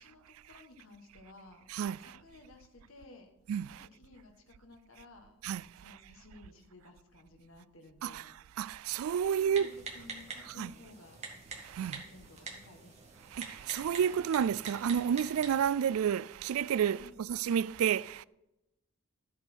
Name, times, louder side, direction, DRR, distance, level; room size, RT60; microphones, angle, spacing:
voice 1, 0.0-1.7 2.0-3.3 3.7-5.4 5.8-8.3 9.2-11.3 11.8-12.9 16.9-17.1, left 2 dB, 75° left, 1.7 m, -55 dB
voice 2, 1.7-2.1 3.5-3.9 5.4-5.6 8.0-9.7 10.6-10.7 11.6-12.0 13.3-18.2, right 8 dB, 85° right, 0.3 m, -31 dB
Typing, 9.5-15.7, right 4 dB, 30° right, 1.9 m, -46 dB
13.0 x 8.4 x 4.6 m
head